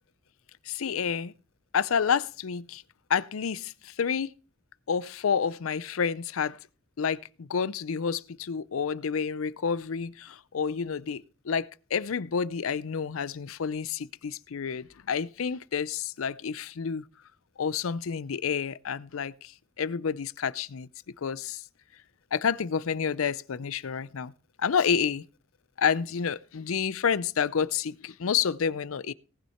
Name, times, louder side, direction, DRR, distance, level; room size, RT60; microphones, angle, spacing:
voice 1, 0.7-1.3 1.7-2.8 3.1-4.3 4.9-6.6 7.0-17.0 17.6-19.5 19.8-20.9 21.2-21.6 22.3-24.3 24.6-25.2 25.8-29.1, left 6 dB, 90° left, 0.5 m, -29 dB
18.5 x 6.4 x 4.4 m
head